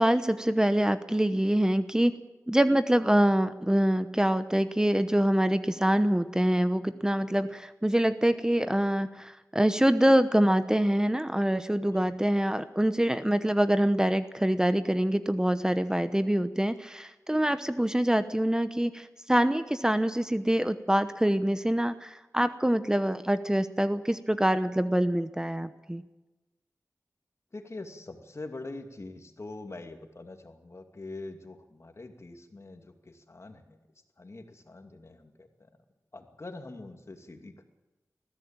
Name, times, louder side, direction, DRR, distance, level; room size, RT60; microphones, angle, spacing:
voice 1, 0.0-2.2 2.5-26.0, right 1 dB, 10° right, 11 dB, 0.9 m, -25 dB
voice 2, 27.5-33.8 34.2-35.7 36.1-37.6, left 2 dB, 50° left, 6 dB, 2.4 m, -44 dB
21.0 x 15.0 x 8.9 m, 1.1 s
wide cardioid pair, 65°, 6 cm